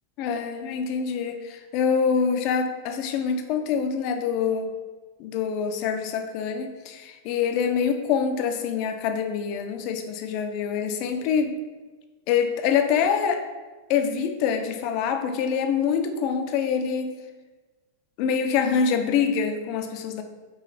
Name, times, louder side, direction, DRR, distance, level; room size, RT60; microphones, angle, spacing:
voice 1, 0.2-4.7 5.2-11.6 12.3-13.4 13.9-17.1 18.2-20.2, left 6 dB, 45° left, 6 dB, 0.4 m, -25 dB
4.7 x 3.0 x 3.0 m, 1.3 s
figure-of-eight pair, 90°, 0 cm